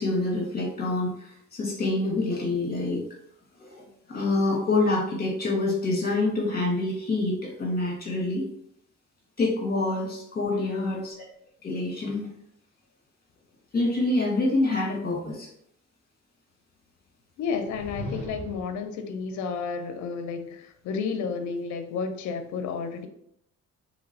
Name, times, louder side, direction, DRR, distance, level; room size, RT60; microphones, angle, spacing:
voice 1, 0.0-3.0 3.6-8.4 9.4-11.1 11.6-12.3 13.7-15.5, left 2 dB, 30° left, -3 dB, 1.5 m, -26 dB
voice 2, 10.5-10.9 17.4-23.1, left 5 dB, 75° left, 6 dB, 0.5 m, -32 dB
sound 1, 17.5-18.8, right 1 dB, 20° right, 1.1 m, -38 dB
3.1 x 2.9 x 2.6 m, 0.72 s
cardioid pair, 90°, 30 cm